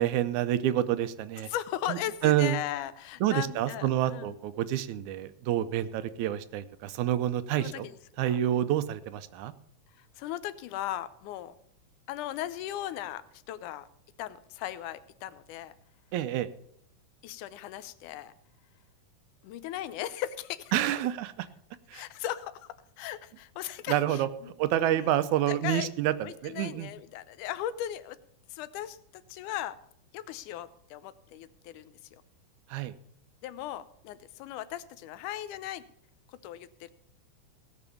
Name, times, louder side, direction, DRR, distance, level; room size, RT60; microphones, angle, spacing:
voice 1, 0.0-1.5 1.9-2.6 3.2-7.9 8.2-9.5 16.1-16.5 20.7-21.5 21.9-22.0 23.9-24.3 24.6-26.1 26.4-26.9 32.7-32.9, right 12 dB, 80° right, 13 dB, 2.0 m, -28 dB
voice 2, 1.5-4.3 7.6-8.4 9.9-11.6 12.1-13.9 14.2-15.7 17.2-18.3 19.4-20.7 21.9-24.5 24.8-25.1 25.5-25.9 26.2-28.2 28.5-29.8 30.1-32.2 33.4-35.9 36.3-36.9, left 12 dB, 90° left, 15 dB, 2.2 m, -38 dB
17.5 x 6.0 x 7.0 m, 0.69 s
omnidirectional pair, 3.5 m